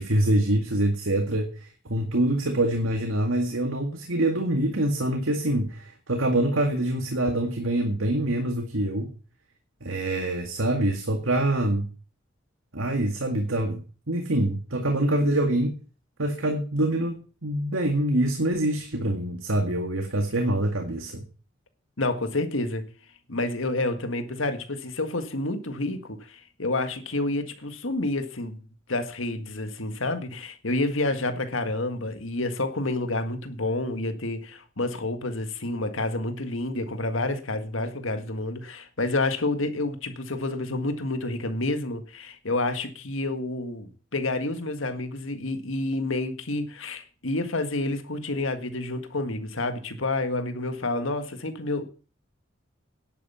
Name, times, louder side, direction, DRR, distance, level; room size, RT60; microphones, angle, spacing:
voice 1, 0.0-9.1 9.8-11.9 12.7-15.8 16.2-21.2, right 1 dB, 85° right, 2.0 m, -25 dB
voice 2, 22.0-22.8 23.3-28.6 28.9-51.9, left 2 dB, 80° left, 1.8 m, -29 dB
11.0 x 8.7 x 7.1 m
head